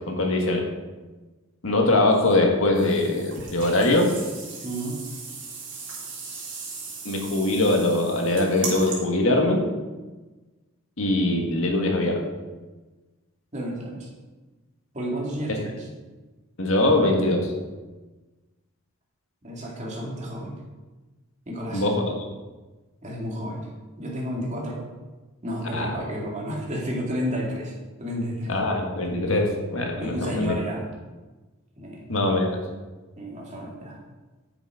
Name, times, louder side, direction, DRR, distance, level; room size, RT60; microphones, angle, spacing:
voice 1, 0.1-0.6 1.6-4.1 7.0-9.6 11.0-12.3 16.6-17.5 21.7-22.2 25.7-26.0 28.5-30.5 32.1-32.6, left 2 dB, 70° left, 1 dB, 1.8 m, -22 dB
sound 1, 2.7-9.0, right 4 dB, 55° right, 3.1 m, -38 dB
voice 2, 4.6-5.0 13.5-14.1 14.9-15.9 19.4-20.6 21.5-21.8 23.0-23.7 24.0-24.8 25.4-27.7 28.0-28.5 30.0-30.9 31.8-32.0 33.2-34.0, equal, 35° right, -3 dB, 2.5 m, -31 dB
9.6 x 7.7 x 4.9 m, 1.2 s
head